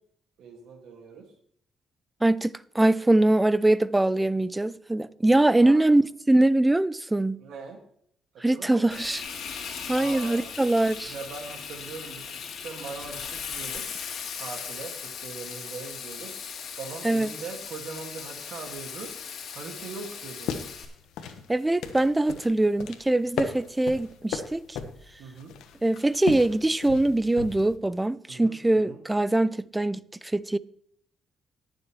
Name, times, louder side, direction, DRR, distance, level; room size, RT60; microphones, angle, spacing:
voice 1, 0.4-1.3 5.6-5.9 7.4-7.8 8.3-9.1 10.0-10.5 11.0-13.9 14.4-16.3 16.8-19.1 19.5-20.5 25.2-25.5 28.3-29.0, right 5 dB, 75° right, 2.0 m, -41 dB
voice 2, 2.2-7.4 8.4-9.2 9.9-11.1 17.0-17.3 21.5-24.8 25.8-30.6, right 2 dB, 15° right, 0.4 m, -23 dB
Frying (food), 8.9-20.8, left 6 dB, 70° left, 2.2 m, -38 dB
sound 1, 20.2-27.8, left 7 dB, 85° left, 1.1 m, -37 dB
19.0 x 7.3 x 3.1 m
cardioid pair, 90°, 0 cm